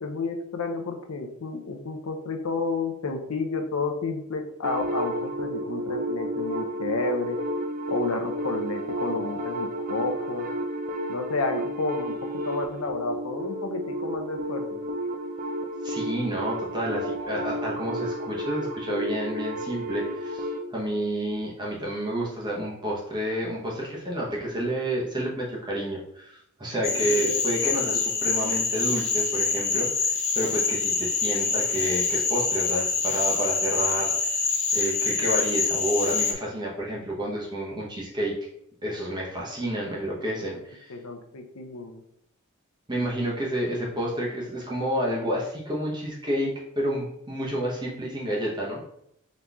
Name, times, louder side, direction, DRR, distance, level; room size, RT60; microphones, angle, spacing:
voice 1, 0.0-7.4 7.9-10.5 11.1-12.2 12.5-14.8 26.9-28.2 40.9-42.0, left 3 dB, 80° left, 4 dB, 0.7 m, -31 dB
sound 1, 4.6-20.6, right 1 dB, 40° right, 0.5 m, -32 dB
voice 2, 15.8-34.3 34.7-38.4 38.8-40.9 42.9-48.9, equal, 20° right, -4 dB, 0.9 m, -30 dB
Cricket / Frog, 26.8-36.3, left 4 dB, 35° left, 0.7 m, -26 dB
3.9 x 3.0 x 3.5 m, 0.74 s
head